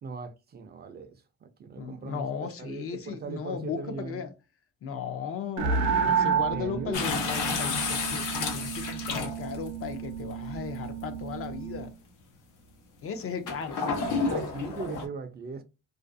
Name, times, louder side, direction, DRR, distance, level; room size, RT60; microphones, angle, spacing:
voice 1, 0.0-2.2 2.6-4.2 6.5-7.1 13.8-13.9 14.3-15.6, right 4 dB, 35° right, 0.4 m, -39 dB
voice 2, 1.8-4.3 4.8-11.9 13.0-13.8, left 6 dB, 50° left, 0.5 m, -36 dB
sound 1, 5.6-11.9, right 6 dB, 75° right, 0.6 m, -31 dB
sound 2, 6.9-9.7 10.5-10.6 13.5-15.1, left 4 dB, 90° left, 0.8 m, -30 dB
2.4 x 2.3 x 2.5 m
cardioid pair, 135°, 30 cm